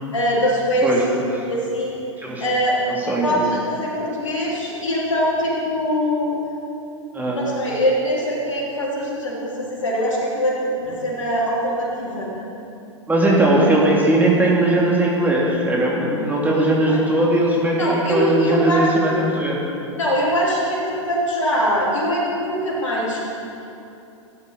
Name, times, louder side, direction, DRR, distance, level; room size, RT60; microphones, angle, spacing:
voice 1, 0.1-0.9 1.2-1.9 2.4-2.7 3.1-6.3 7.3-12.3 16.9-17.0 17.8-19.2 19.9-23.2, equal, 80° left, -5 dB, 3.4 m, -22 dB
voice 2, 0.8-1.5 2.2-2.4 3.1-3.5 7.1-7.4 13.1-19.6, right 1 dB, 10° right, -4 dB, 2.5 m, -19 dB
16.5 x 10.0 x 4.0 m, 2.8 s
figure-of-eight pair, 100°, 16 cm